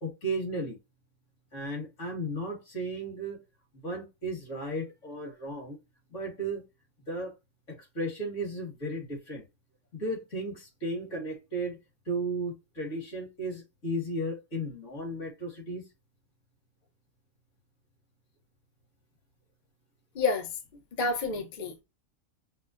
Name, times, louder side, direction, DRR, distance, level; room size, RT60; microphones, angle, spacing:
voice 1, 0.0-0.8 1.5-3.4 3.7-5.8 6.1-6.6 7.1-7.4 7.7-9.4 9.9-11.8 12.1-15.9, right 1 dB, 60° left, 2.0 m, -35 dB
voice 2, 20.1-20.5 21.0-21.8, left 4 dB, 45° left, 0.8 m, -29 dB
5.4 x 2.1 x 2.4 m
omnidirectional pair, 1.4 m